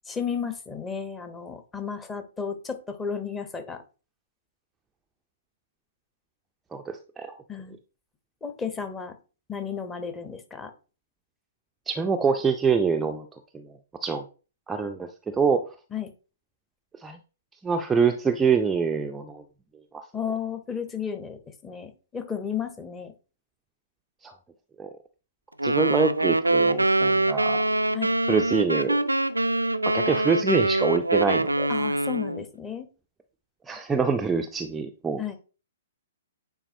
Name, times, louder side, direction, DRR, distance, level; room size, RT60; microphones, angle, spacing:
voice 1, 0.1-3.8 7.5-7.8 8.4-9.2 9.5-10.7 15.9-16.1 20.1-23.1 27.9-28.2 31.7-32.9 35.2-35.4, left 7 dB, 15° left, 8 dB, 0.8 m, -33 dB
voice 2, 6.7-7.4 11.9-13.3 13.5-13.7 14.0-14.2 14.7-15.7 17.0-17.2 17.6-19.4 19.9-20.0 24.2-24.3 24.8-24.9 25.6-27.6 28.3-29.0 29.9-31.7 33.7-35.4, right 5 dB, 10° right, 4 dB, 0.4 m, -25 dB
sound 1, 25.6-32.4, right 2 dB, 85° right, 0.4 m, -24 dB
8.9 x 4.1 x 2.7 m, 0.35 s
figure-of-eight pair, 115°, 0 cm